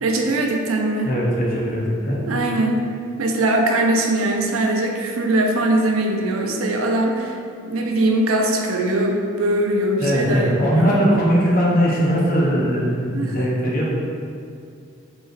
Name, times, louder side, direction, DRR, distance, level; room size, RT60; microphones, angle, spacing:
voice 1, 0.0-1.1 2.3-2.8 3.2-11.0 13.1-13.4, right 1 dB, 85° right, 2 dB, 0.5 m, -21 dB
voice 2, 1.0-2.2 10.0-13.9, equal, 45° left, -4 dB, 0.7 m, -20 dB
4.9 x 3.1 x 2.5 m, 2.5 s
head